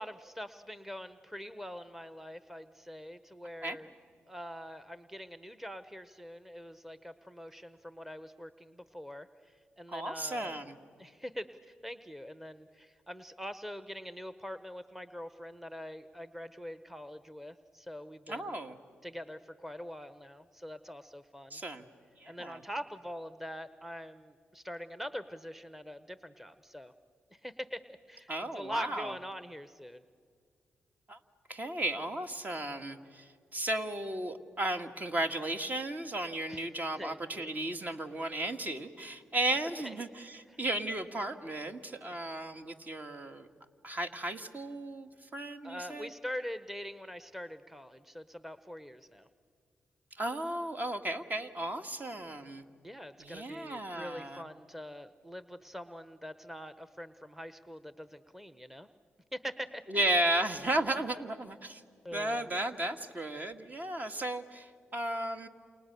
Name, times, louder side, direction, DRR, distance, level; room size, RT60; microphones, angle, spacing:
voice 1, 0.0-3.9 4.3-10.5 11.0-18.5 19.0-21.6 22.2-26.9 27.3-30.0 36.5-36.7 37.0-37.5 39.8-40.0 40.5-40.6 45.6-49.3 52.8-58.9 59.3-60.1 62.0-62.5, equal, 5° right, 12 dB, 1.1 m, -44 dB
voice 2, 9.9-10.8 18.3-18.8 21.5-21.9 22.2-22.6 28.3-29.2 31.1-31.2 31.5-43.5 43.8-46.1 50.2-52.6 53.2-54.5 59.9-61.8 62.1-65.5, right 1 dB, 40° right, 7 dB, 1.9 m, -34 dB
29.0 x 29.0 x 6.9 m, 2.1 s
supercardioid pair, 45°, 4 cm